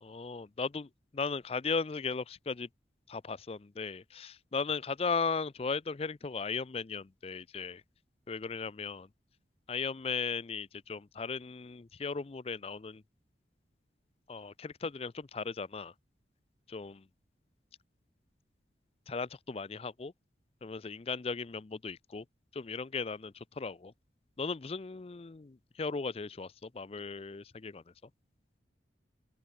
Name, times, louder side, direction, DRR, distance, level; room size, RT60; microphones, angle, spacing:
voice 1, 0.0-2.7 3.1-7.8 8.3-9.1 9.7-13.0 14.3-15.9 16.7-17.0 19.1-20.1 20.6-22.2 22.5-23.9 24.4-27.8, left 4 dB, 35° left, 0.4 m, -37 dB
open air
head